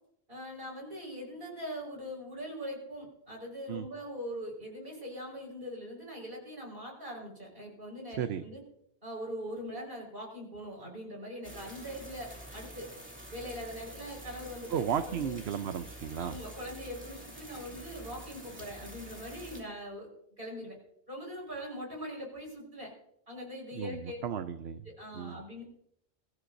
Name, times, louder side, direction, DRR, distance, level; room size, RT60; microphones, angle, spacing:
voice 1, 0.3-8.6 9.0-12.9 13.3-15.3 16.2-20.1 20.4-20.8 21.1-22.9 23.3-24.2 24.9-25.6, equal, 55° right, 0 dB, 5.2 m, -42 dB
sound 1, 11.4-19.6, right 1 dB, 10° right, 2.7 m, -47 dB
voice 2, 14.7-16.3 23.7-24.9 25.1-25.4, right 8 dB, 70° right, 9 dB, 0.9 m, -34 dB
23.0 x 14.5 x 2.6 m, 0.73 s
omnidirectional pair, 1.1 m